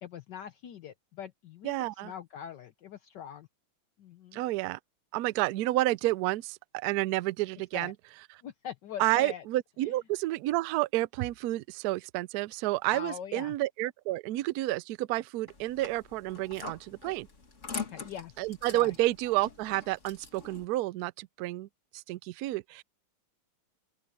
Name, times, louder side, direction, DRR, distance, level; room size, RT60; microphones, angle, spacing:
voice 1, 0.0-1.7 2.0-3.5 4.0-4.4 7.7-7.9 8.4-9.4 9.8-9.9 12.9-13.6 17.7-18.5 18.7-18.9, left 9 dB, 65° left, 1.4 m, -42 dB
voice 2, 1.6-2.1 4.3-4.8 5.1-7.9 9.0-17.3 18.4-21.7 21.9-22.8, right 17 dB, 80° right, 0.8 m, -30 dB
sound 1, 15.5-20.6, left 5 dB, 40° left, 2.3 m, -44 dB
open air
omnidirectional pair, 2.2 m